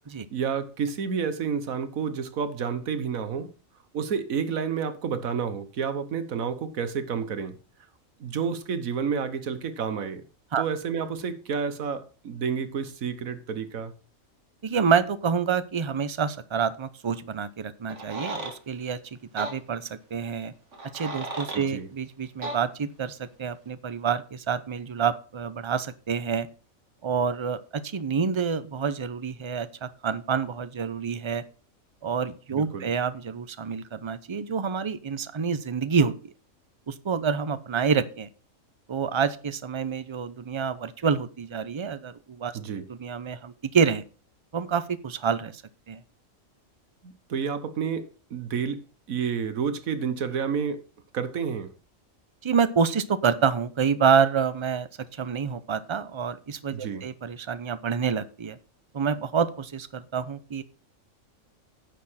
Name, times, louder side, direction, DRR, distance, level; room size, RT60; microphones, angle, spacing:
voice 1, 0.3-3.5 3.9-7.6 8.2-10.2 10.6-13.9 21.5-21.9 32.5-32.9 42.5-42.9 47.0-48.8 49.1-50.8 51.1-51.7 56.7-57.1, right 6 dB, 85° right, 1.5 m, -30 dB
voice 2, 14.6-20.5 20.9-26.5 27.0-31.4 32.0-36.3 36.9-38.3 38.9-42.5 42.9-44.0 44.5-45.6 45.9-46.0 52.4-58.6 58.9-60.6, right 6 dB, 30° right, 0.5 m, -27 dB
sound 1, 17.9-18.6 19.4-19.5 20.7-21.7 22.4-22.6, right 2 dB, 60° right, 2.3 m, -34 dB
10.0 x 6.6 x 5.6 m
omnidirectional pair, 1.4 m